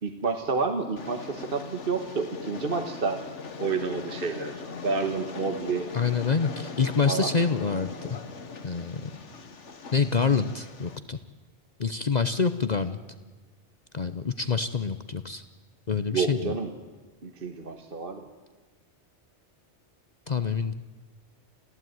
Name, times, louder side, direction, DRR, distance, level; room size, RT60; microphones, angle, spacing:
voice 1, 0.0-3.2 3.6-4.5 4.8-5.9 7.1-7.3 16.1-16.7 17.2-18.3, right 4 dB, 50° right, 6 dB, 1.6 m, -29 dB
Train, 1.0-11.0, left 4 dB, 85° left, 1.8 m, -40 dB
voice 2, 5.9-8.1 8.6-9.1 9.9-11.2 11.8-13.0 13.9-15.4 15.9-16.6 20.3-20.7, left 5 dB, 40° left, 11 dB, 0.8 m, -26 dB
27.5 x 16.0 x 9.4 m, 1.3 s
omnidirectional pair, 1.2 m